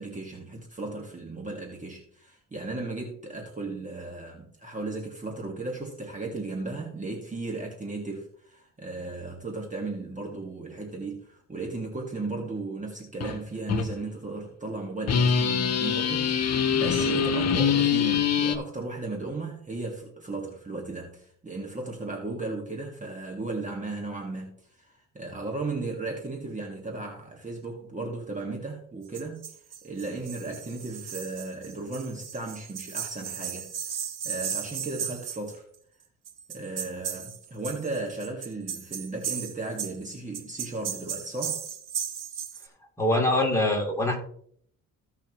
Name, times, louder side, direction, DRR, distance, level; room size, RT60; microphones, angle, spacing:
voice 1, 0.0-29.6 29.8-34.0 34.2-35.7 36.5-41.6, right 3 dB, 25° right, 0 dB, 1.8 m, -35 dB
sound 1, 13.2-13.4 13.7-13.9 15.1-18.6, left 7 dB, 50° left, 1.0 m, -24 dB
sound 2, 29.1-35.5 36.3-42.7, right 8 dB, 70° right, 1.4 m, -35 dB
voice 2, 43.0-44.2, left 1 dB, 10° left, -1 dB, 3.0 m, -23 dB
15.5 x 5.8 x 3.0 m, 0.62 s
cardioid pair, 100°, 33 cm